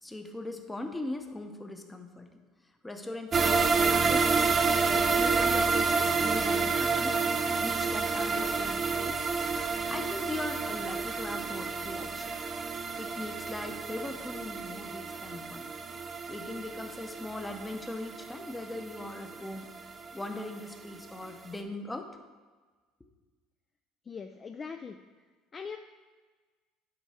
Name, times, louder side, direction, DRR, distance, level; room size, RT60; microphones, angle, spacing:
voice 1, 0.0-2.4 2.8-4.4 4.8-7.2 7.6-9.3 9.9-12.3 13.0-15.7 16.3-19.7 20.1-22.1, left 2 dB, 10° left, 5 dB, 0.7 m, -39 dB
sound 1, 3.3-20.4 20.7-20.8 21.2-21.3, right 4 dB, 30° right, 0.5 m, -29 dB
voice 2, 24.1-25.1 25.5-25.8, left 5 dB, 30° left, 6 dB, 0.3 m, -41 dB
9.2 x 3.6 x 4.2 m, 1.4 s
supercardioid pair, 105°, 0 cm